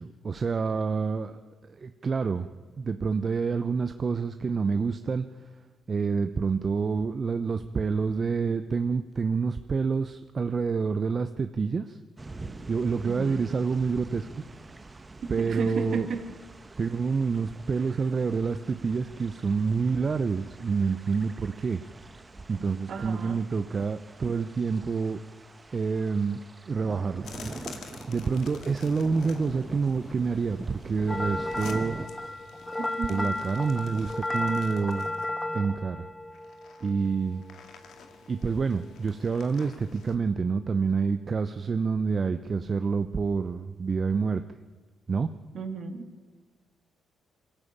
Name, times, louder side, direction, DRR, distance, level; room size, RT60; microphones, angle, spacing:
voice 1, 0.0-2.5 2.8-5.3 5.9-12.0 12.7-14.3 15.3-16.1 16.8-21.8 22.5-25.2 25.7-26.4 26.7-27.3 28.1-32.0 33.1-35.1 35.5-36.1 36.8-37.4 38.3-44.4 45.1-45.3, right 5 dB, 45° right, 9 dB, 0.8 m, -28 dB
sound 1, 12.2-32.1, right 3 dB, 25° right, 1.2 m, -44 dB
voice 2, 13.0-13.5 15.2-16.2 22.9-23.4 32.8-33.4 45.5-46.1, right 5 dB, 60° right, 6 dB, 2.4 m, -33 dB
sound 2, 27.2-35.6 36.3-40.2, left 6 dB, 70° left, 2.0 m, -50 dB
sound 3, 31.1-37.3, left 1 dB, 15° left, 1.6 m, -33 dB
22.5 x 13.5 x 8.7 m, 1.3 s
supercardioid pair, 60°, 0 cm